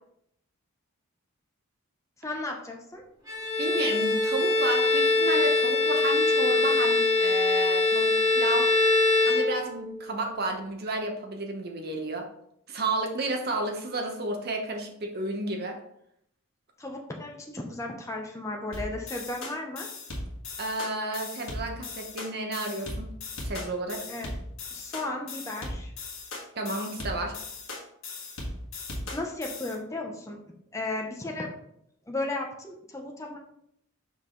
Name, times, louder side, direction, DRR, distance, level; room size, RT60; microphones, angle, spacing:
voice 1, 2.2-3.0 16.8-19.9 24.1-24.3 24.7-25.9 29.1-30.4 30.7-31.5 32.1-33.4, left 2 dB, 15° left, 1 dB, 0.7 m, -35 dB
Bowed string instrument, 3.3-10.0, left 3 dB, 15° right, 1.8 m, -23 dB
voice 2, 3.6-8.7 9.3-12.3 12.7-15.8 20.6-23.1 23.4-24.1 26.5-27.4, right 2 dB, 45° right, 3 dB, 1.0 m, -32 dB
sound 1, 18.7-29.8, left 2 dB, 70° left, 1.5 m, -38 dB
5.5 x 4.7 x 3.9 m, 0.73 s
head